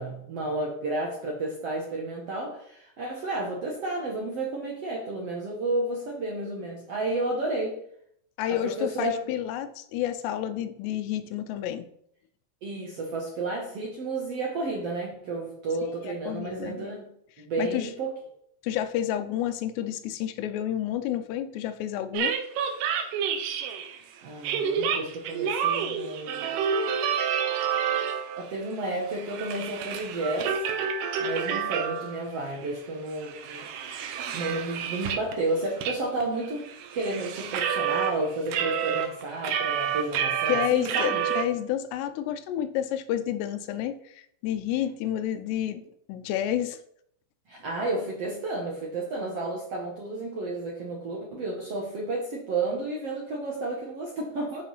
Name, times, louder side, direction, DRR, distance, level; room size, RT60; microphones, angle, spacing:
voice 1, 0.0-7.8 8.5-9.2 12.6-17.1 17.4-18.1 24.2-26.5 28.4-30.6 31.2-33.7 34.3-41.3 47.5-54.6, right 2 dB, 65° right, -1 dB, 1.6 m, -31 dB
voice 2, 8.4-11.9 16.0-16.9 17.6-17.9 18.6-22.4 40.5-45.8 46.1-46.8, left 11 dB, 90° left, 10 dB, 2.9 m, -30 dB
sound 1, 22.1-24.0 24.4-28.5 28.8-32.2 32.6-32.7 33.1-35.4 35.8-35.9 36.2-38.1 38.5-41.4, right 7 dB, 80° right, 2.9 m, -29 dB
9.9 x 5.2 x 5.6 m, 0.70 s
omnidirectional pair, 4.8 m